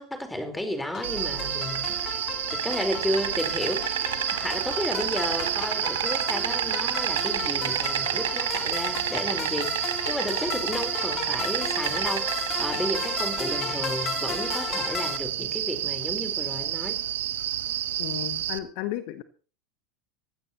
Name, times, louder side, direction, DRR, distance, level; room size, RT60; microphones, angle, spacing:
voice 1, 0.0-2.0 2.6-17.0, left 1 dB, 5° left, 6 dB, 4.3 m, -33 dB
sound 1, 0.9-15.2, left 8 dB, 35° left, 1.9 m, -35 dB
Insect, 1.0-18.6, right 12 dB, 65° right, 1.1 m, -29 dB
voice 2, 18.0-19.2, left 14 dB, 55° left, 11 dB, 1.2 m, -33 dB
20.0 x 16.0 x 3.0 m, 0.38 s
figure-of-eight pair, 85°, 0 cm